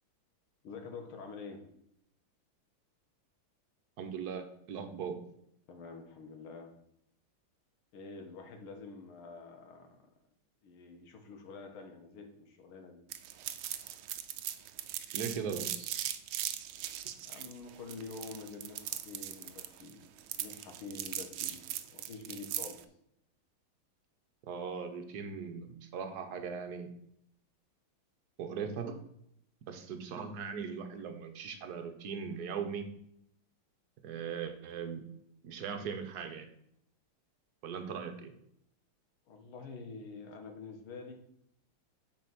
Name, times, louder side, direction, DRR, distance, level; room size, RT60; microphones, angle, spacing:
voice 1, 0.6-1.7 5.7-6.7 7.9-10.0 10.6-13.0 17.3-20.0 20.3-21.6 21.9-22.8 39.3-41.1, left 4 dB, 80° left, 4 dB, 2.2 m, -47 dB
voice 2, 4.0-5.2 15.1-15.9 24.4-26.9 28.4-29.0 29.7-32.9 34.0-35.0 35.4-36.5 37.6-38.3, right 6 dB, 55° right, 6 dB, 1.4 m, -39 dB
sound 1, 13.1-22.8, right 12 dB, 80° right, 1.5 m, -39 dB
8.2 x 4.5 x 6.1 m, 0.73 s
omnidirectional pair, 2.3 m